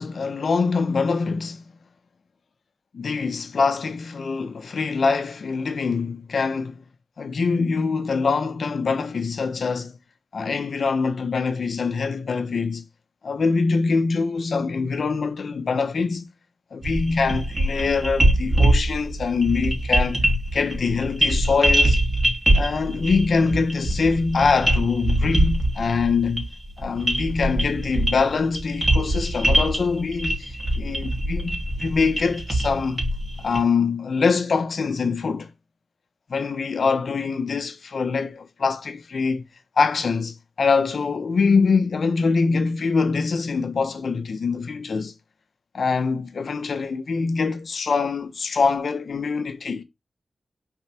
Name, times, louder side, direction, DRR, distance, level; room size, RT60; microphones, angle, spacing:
voice 1, 0.0-1.6 2.9-6.8 7.2-10.0 10.3-12.8 13.2-16.3 16.7-20.2 20.5-22.0 22.5-26.5 26.8-33.0 33.4-35.5 36.3-39.4 39.8-45.1 45.7-49.8, left 4 dB, 65° left, 1.1 m, -24 dB
sound 1, 16.8-33.6, right 1 dB, 25° right, 2.8 m, -23 dB
5.7 x 4.6 x 4.4 m
wide cardioid pair, 90°, 0 cm